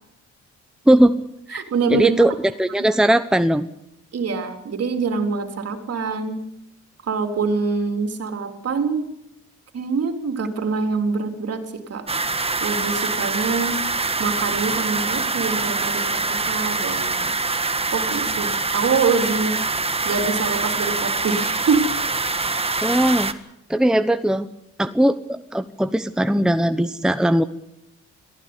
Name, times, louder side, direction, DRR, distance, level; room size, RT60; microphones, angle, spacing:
voice 1, 0.9-1.2 1.5-3.7 22.8-23.3 23.7-24.5 24.8-27.4, right 1 dB, ahead, 10 dB, 1.0 m, -19 dB
voice 2, 1.5-2.2 2.8-2.9 4.1-6.4 7.0-9.1 9.7-12.1 12.6-13.8 14.2-17.3 17.9-19.6 20.0-21.9, right 4 dB, 55° right, 6 dB, 3.6 m, -25 dB
sound 1, 12.1-23.3, right 3 dB, 20° right, 1.6 m, -24 dB
23.0 x 15.0 x 9.7 m, 0.79 s
cardioid pair, 90°, 30 cm